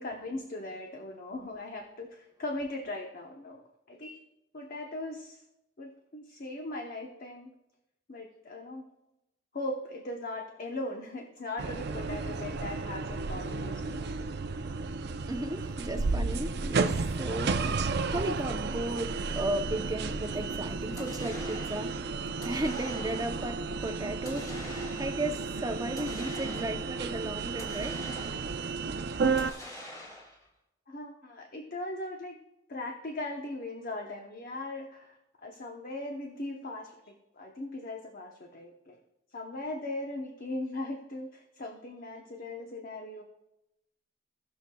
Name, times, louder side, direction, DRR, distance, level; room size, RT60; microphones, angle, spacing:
voice 1, 0.0-3.6 3.9-4.2 4.5-5.4 5.8-7.5 8.1-8.8 9.5-14.1 30.9-32.4 32.7-39.0 39.3-43.2, left 2 dB, 50° left, 0.9 m, -39 dB
sound 1, 11.6-29.5, right 4 dB, 60° right, 0.5 m, -33 dB
voice 2, 15.3-28.2, right 1 dB, 20° right, 0.7 m, -35 dB
sound 2, 21.0-21.9 22.4-23.5 24.3-25.3 26.0-27.0 27.6-28.7 29.4-30.5, left 1 dB, 20° left, 1.9 m, -45 dB
18.5 x 6.5 x 2.3 m
head